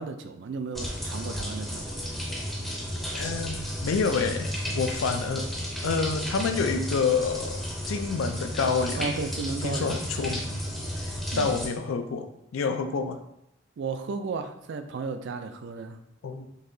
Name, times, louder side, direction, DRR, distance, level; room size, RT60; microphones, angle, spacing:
voice 1, 0.0-2.0 9.0-9.9 11.3-11.6 13.8-16.0, right 4 dB, 60° right, 8 dB, 0.3 m, -34 dB
sound 1, 0.7-11.7, equal, ahead, 0.5 m, -33 dB
voice 2, 3.1-5.5 5.8-9.1 9.6-10.6 11.0-12.3 12.5-13.2 16.2-16.5, left 5 dB, 80° left, 7 dB, 0.4 m, -28 dB
3.9 x 2.7 x 2.6 m, 0.79 s
head